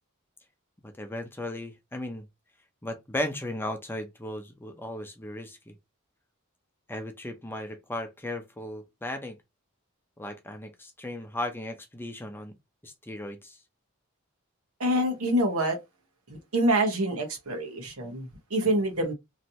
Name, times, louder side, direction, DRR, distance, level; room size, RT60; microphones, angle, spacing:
voice 1, 0.8-2.3 2.8-5.7 6.9-9.4 10.2-12.5 12.8-13.6, left 1 dB, 10° left, 0.6 m, -36 dB
voice 2, 14.8-15.8 16.3-19.1, right 1 dB, 90° right, 1.2 m, -26 dB
3.1 x 2.7 x 2.8 m
head